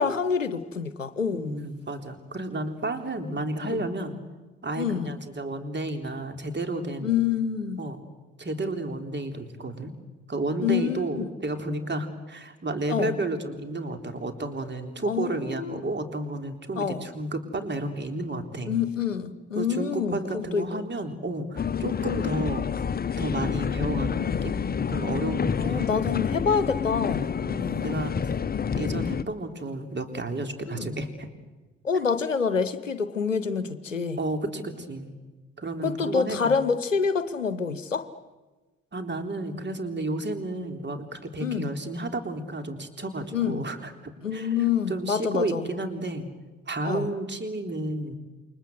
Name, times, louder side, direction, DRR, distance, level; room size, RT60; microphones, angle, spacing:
voice 1, 0.0-1.6 3.6-3.8 4.8-5.2 7.0-7.8 10.6-11.3 12.9-13.1 15.1-15.8 16.8-17.0 18.6-20.7 25.6-27.2 30.7-30.9 31.8-34.2 35.8-38.1 41.4-41.7 43.3-43.7 44.2-45.7 46.8-47.1, left 6 dB, 90° left, 14 dB, 0.8 m, -27 dB
voice 2, 1.3-4.2 4.6-7.2 7.8-8.0 8.4-9.9 10.3-18.8 19.6-22.6 23.2-24.6 24.9-26.0 27.4-28.1 28.7-31.3 31.9-32.0 34.2-35.1 35.6-36.6 38.9-44.6 44.9-46.3 46.7-48.2, right 2 dB, 30° right, 6 dB, 3.7 m, -32 dB
sound 1, 21.6-29.2, left 7 dB, 25° left, 0.9 m, -28 dB
29.0 x 23.5 x 8.0 m, 1.2 s
figure-of-eight pair, 45°, 37 cm